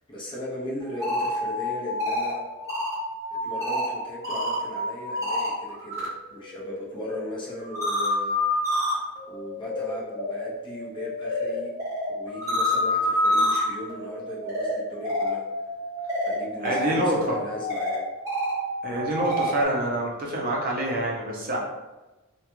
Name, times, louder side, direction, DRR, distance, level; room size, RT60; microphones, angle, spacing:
voice 1, 0.0-2.4 3.3-8.7 9.3-11.7 12.1-15.4 16.2-18.1, equal, 25° left, -4 dB, 0.5 m, -38 dB
sound 1, 0.8-6.1 6.4-19.6, left 1 dB, 15° right, 0.9 m, -28 dB
voice 2, 16.6-17.4 18.8-21.6, right 1 dB, 45° right, -2 dB, 0.5 m, -26 dB
2.3 x 2.1 x 2.9 m, 1.1 s
head